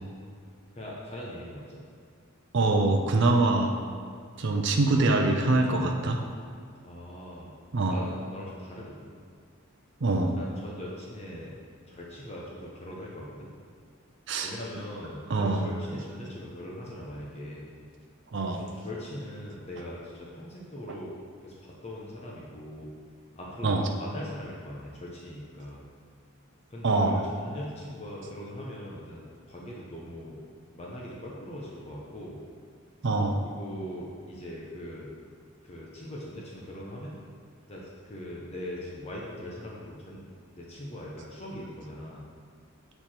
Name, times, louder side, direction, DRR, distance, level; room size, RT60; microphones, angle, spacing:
voice 1, 0.7-1.8 6.8-7.5 7.9-9.1 10.3-11.6 11.9-13.5 14.4-17.7 18.5-21.1 21.4-22.9 23.4-25.8 26.7-30.4 30.7-32.4 33.4-35.1 35.6-37.2 37.7-40.2 40.5-42.3, left 1 dB, 30° left, -4 dB, 0.8 m, -41 dB
voice 2, 2.5-3.7 4.4-6.2 7.7-8.0 10.0-10.4 14.3-14.5 15.3-15.7 18.3-18.6 23.6-23.8 26.8-27.2 33.0-33.4, right 2 dB, 55° right, 2 dB, 0.5 m, -24 dB
6.9 x 4.5 x 4.3 m, 2.2 s
head